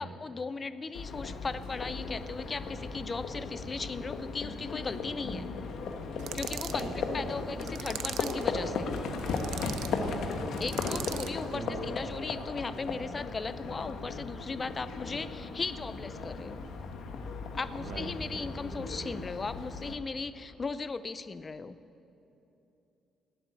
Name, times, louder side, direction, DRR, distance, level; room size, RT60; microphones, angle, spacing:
voice 1, 0.0-5.5 6.3-8.9 10.6-16.6 17.5-21.8, left 4 dB, 25° left, 13 dB, 0.5 m, -37 dB
Livestock farm animals working animals, 0.9-19.9, left 4 dB, 60° left, 1.3 m, -36 dB
sound 1, 6.2-6.9 7.6-8.5 9.1-9.9 10.6-11.4, right 11 dB, 85° right, 0.6 m, -40 dB
voice 2, 6.6-7.3 9.9-10.4 11.5-11.9 17.7-18.5, right 4 dB, 55° right, 5 dB, 1.4 m, -43 dB
18.5 x 8.5 x 8.9 m, 2.9 s
cardioid pair, 155°, 0 cm